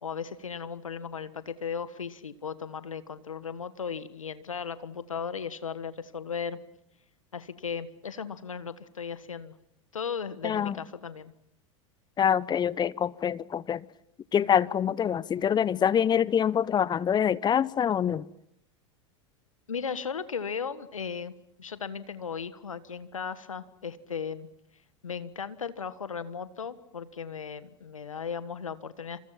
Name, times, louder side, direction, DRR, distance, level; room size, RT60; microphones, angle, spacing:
voice 1, 0.0-6.6 7.3-9.5 9.9-11.3 19.7-21.3 21.6-24.5 25.0-29.2, left 6 dB, 90° left, 1.5 m, -36 dB
voice 2, 10.4-10.7 12.2-13.8 14.3-18.3, left 8 dB, 25° left, 0.9 m, -25 dB
27.5 x 27.0 x 5.9 m
hypercardioid pair, 90°, 16 cm